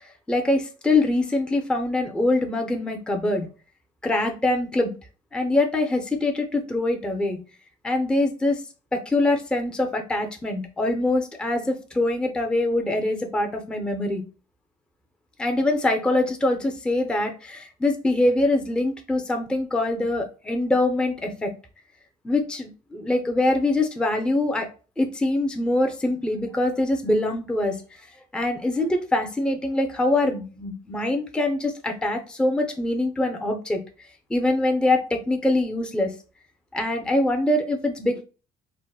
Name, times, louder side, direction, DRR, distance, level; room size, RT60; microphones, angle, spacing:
voice 1, 0.3-3.5 4.0-4.9 5.3-7.4 7.8-8.6 8.9-14.2 15.4-21.5 22.2-24.7 25.0-27.8 28.3-33.8 34.3-36.1 36.7-38.2, left 2 dB, 5° left, 4 dB, 0.4 m, -24 dB
3.4 x 2.1 x 2.2 m, 0.34 s
cardioid pair, 110°, 17 cm